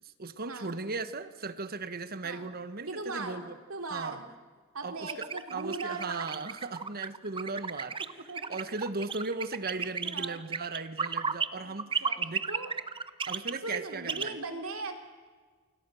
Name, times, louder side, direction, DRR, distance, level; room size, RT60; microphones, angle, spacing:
voice 1, 0.0-3.6 3.9-4.2 4.8-8.0 8.5-12.5 13.3-14.4, right 3 dB, 45° right, 12 dB, 1.3 m, -37 dB
voice 2, 2.9-3.4 3.7-4.2 4.7-6.3 8.3-8.6 10.0-10.4 11.6-12.2 12.5-12.7 13.6-14.9, right 3 dB, 70° right, 5 dB, 3.5 m, -39 dB
sound 1, 5.1-11.5 11.8-14.3, right 5 dB, 25° right, 0.8 m, -33 dB
28.5 x 25.5 x 6.4 m, 1.5 s
head